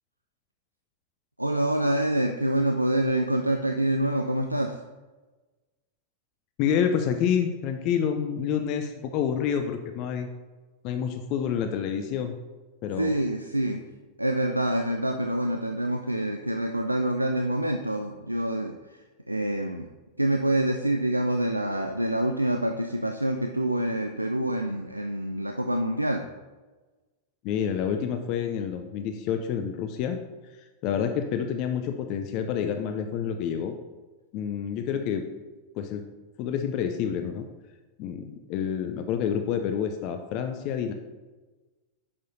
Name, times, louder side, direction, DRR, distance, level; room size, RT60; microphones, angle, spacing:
voice 1, 1.4-4.8 13.0-13.8 14.2-19.9 20.2-26.2, right 1 dB, 85° right, 5 dB, 0.4 m, -26 dB
voice 2, 6.6-10.3 10.8-12.4 12.8-13.1 27.4-30.2 30.8-33.8 34.3-35.2 35.8-36.0 36.4-37.4 38.0-40.9, left 8 dB, 40° left, 6 dB, 0.5 m, -28 dB
8.5 x 6.5 x 2.7 m, 1.2 s
figure-of-eight pair, 90°, 0 cm